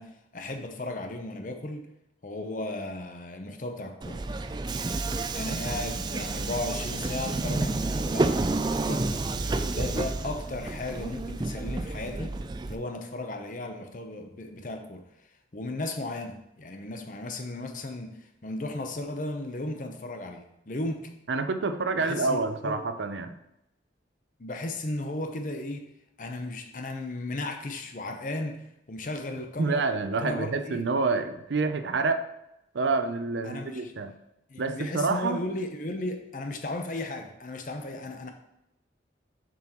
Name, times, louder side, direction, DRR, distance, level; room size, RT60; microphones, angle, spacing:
voice 1, 0.0-1.9 2.2-4.2 5.3-9.1 9.4-12.4 12.7-15.0 15.5-21.1 22.0-22.8 24.4-25.9 26.2-29.8 30.2-30.8 33.4-33.9 34.5-38.3, left 2 dB, 45° left, 5 dB, 0.7 m, -35 dB
Subway metro underground, 4.0-12.8, right 2 dB, 25° right, 0.3 m, -30 dB
voice 2, 21.3-23.3 29.6-32.2 32.7-34.1 34.6-35.4, right 3 dB, 80° right, 9 dB, 0.5 m, -28 dB
6.9 x 6.3 x 3.0 m, 0.84 s
head